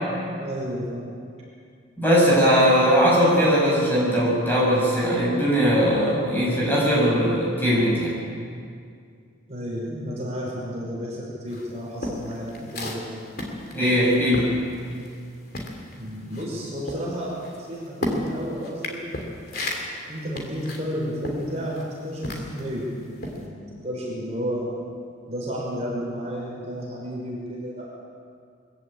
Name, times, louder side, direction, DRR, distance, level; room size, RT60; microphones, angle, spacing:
voice 1, 0.4-1.1 9.5-13.0 16.0-19.1 20.1-22.9 23.3-24.7 25.3-27.9, equal, 30° right, -4 dB, 5.4 m, -32 dB
voice 2, 2.0-8.1 13.7-14.6, equal, 10° left, -6 dB, 6.6 m, -20 dB
sound 1, 11.5-15.3 15.5-22.7 23.2-23.4, left 1 dB, 50° left, 3.0 m, -33 dB
22.5 x 15.0 x 8.8 m, 2.3 s
head